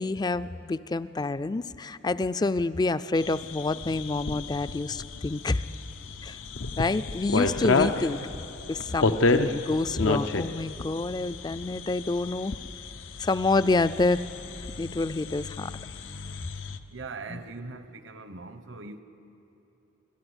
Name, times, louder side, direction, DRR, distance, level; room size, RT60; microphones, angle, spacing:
voice 1, 0.0-5.6 6.2-6.4 6.8-8.2 8.7-12.6 13.2-14.2 14.8-15.7 17.3-17.4, left 3 dB, 20° left, 14 dB, 0.4 m, -27 dB
sound 1, 3.2-16.8, left 3 dB, 85° left, 0.7 m, -31 dB
voice 2, 8.8-9.2 16.9-19.0, right 3 dB, 70° right, 10 dB, 1.0 m, -41 dB
25.5 x 14.0 x 8.1 m, 3.0 s
head